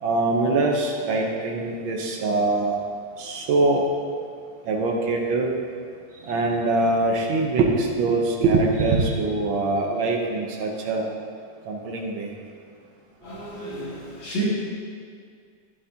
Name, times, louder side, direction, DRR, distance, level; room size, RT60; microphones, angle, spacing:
voice 1, 0.0-2.8 3.2-3.9 4.6-5.5 6.2-11.1 11.7-12.3, right 3 dB, 85° right, 0 dB, 1.1 m, -23 dB
voice 2, 13.2-14.4, right 2 dB, 40° left, -8 dB, 2.8 m, -32 dB
11.5 x 11.0 x 2.8 m, 2.1 s
omnidirectional pair, 3.5 m